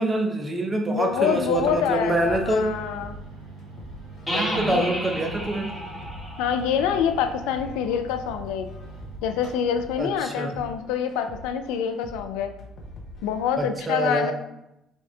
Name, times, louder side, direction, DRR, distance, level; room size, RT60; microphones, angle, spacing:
voice 1, 0.0-2.7 4.3-5.7 10.0-10.6 13.6-14.3, right 1 dB, 25° right, 3 dB, 0.8 m, -25 dB
voice 2, 0.9-3.1 4.7-4.9 6.4-8.7 9.2-12.5 13.2-14.3, left 8 dB, 70° left, 7 dB, 0.4 m, -26 dB
sound 1, 1.0-10.0, right 3 dB, 75° right, 1.6 m, -43 dB
sound 2, 1.5-13.5, equal, 55° left, 0.9 m, -44 dB
sound 3, 4.3-7.9, equal, 10° left, 1.4 m, -32 dB
5.2 x 2.6 x 3.4 m, 0.87 s
hypercardioid pair, 55°, 0 cm